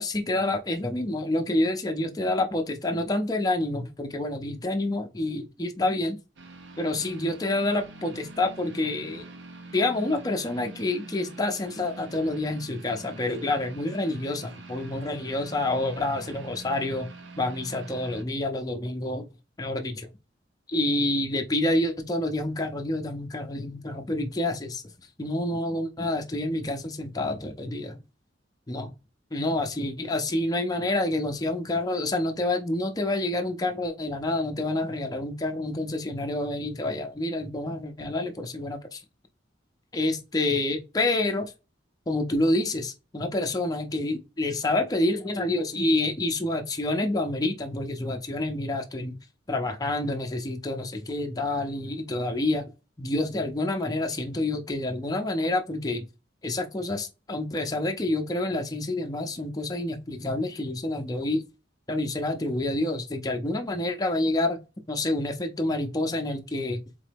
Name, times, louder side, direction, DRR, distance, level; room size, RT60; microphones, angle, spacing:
voice 1, 0.0-6.2 6.8-9.2 9.7-17.1 17.4-19.2 19.6-20.1 20.7-24.8 25.2-28.0 28.7-28.9 29.3-39.0 39.9-41.5 42.1-49.2 49.5-52.7 53.0-56.1 56.4-61.4 61.9-64.6 64.9-66.8, left 2 dB, 20° left, 0.5 m, -28 dB
sound 1, 6.4-18.2, right 3 dB, 65° right, 0.8 m, -45 dB
3.9 x 3.7 x 3.3 m
head